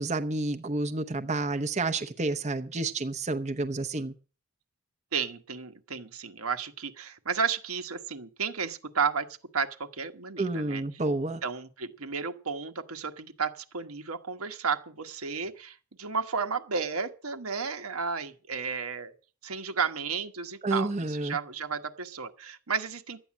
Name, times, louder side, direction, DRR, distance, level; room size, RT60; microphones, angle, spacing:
voice 1, 0.0-4.1 10.4-11.4 20.6-21.4, right 2 dB, 30° right, 0.8 m, -30 dB
voice 2, 5.1-9.3 9.5-10.8 11.4-19.1 19.4-23.2, right 5 dB, 85° right, 1.3 m, -33 dB
12.5 x 9.3 x 7.3 m
head